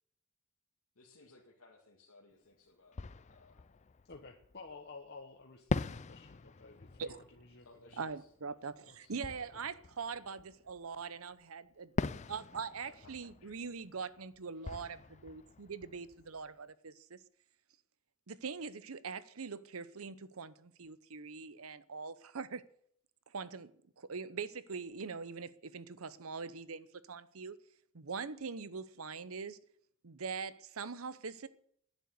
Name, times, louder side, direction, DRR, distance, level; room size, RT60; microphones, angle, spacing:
voice 1, 1.0-3.8 7.6-8.3 12.9-13.6 15.5-15.6, left 2 dB, 85° left, 2.2 m, -62 dB
Fireworks, 2.3-2.4 2.9-4.9 5.7-11.0 12.0-16.7, left 3 dB, 35° left, 0.4 m, -43 dB
voice 2, 4.1-8.0 8.9-9.1, left 3 dB, 50° left, 1.3 m, -53 dB
voice 3, 8.0-11.9 12.3-17.2 18.3-22.7 23.3-23.7 24.0-27.6 27.9-29.6 30.0-31.5, right 5 dB, 85° right, 0.8 m, -42 dB
10.5 x 9.6 x 8.0 m
head